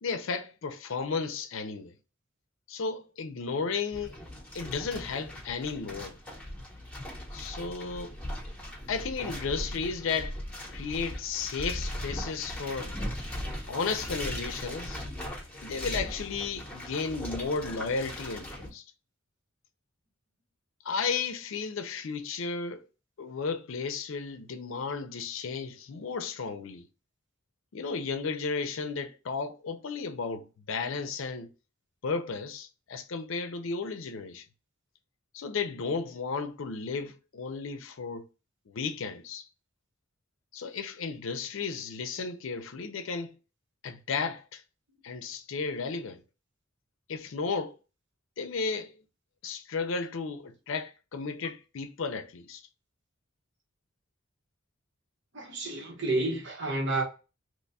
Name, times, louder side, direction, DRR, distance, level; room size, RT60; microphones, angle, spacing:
voice 1, 0.0-1.9 2.7-4.2 4.5-6.2 7.3-8.1 8.9-10.3 10.7-12.9 13.7-15.0 15.6-18.8 20.8-22.8 23.2-26.9 27.7-31.5 32.0-34.4 35.3-38.3 38.7-39.4 40.5-43.3 43.8-44.6 45.0-46.2 47.1-47.8 48.4-48.9 49.4-52.6, left 5 dB, 70° left, 0.5 m, -34 dB
sound 1, 3.9-18.7, left 1 dB, 5° left, 0.8 m, -39 dB
voice 2, 55.3-57.0, right 2 dB, 60° right, 1.1 m, -30 dB
3.0 x 2.2 x 4.0 m
head